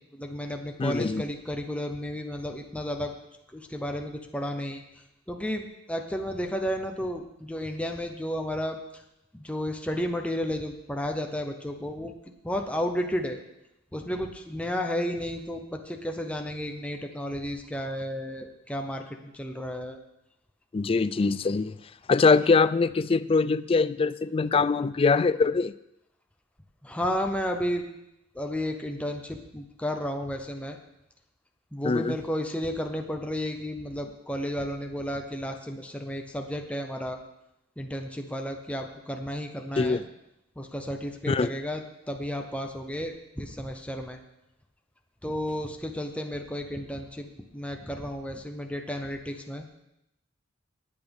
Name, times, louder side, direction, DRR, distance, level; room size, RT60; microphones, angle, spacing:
voice 1, 0.1-3.1 3.5-4.8 5.3-9.0 9.3-12.1 12.4-13.4 13.9-20.0 26.8-27.8 28.3-30.8 31.7-37.2 37.8-40.0 40.6-44.2 45.2-47.3 47.5-49.7, equal, 5° left, 3 dB, 0.8 m, -32 dB
voice 2, 0.8-1.2 20.7-21.7 22.1-25.7 31.8-32.2 39.8-40.0 41.3-41.5, left 4 dB, 30° left, 15 dB, 0.3 m, -23 dB
19.0 x 8.3 x 3.5 m, 0.86 s
head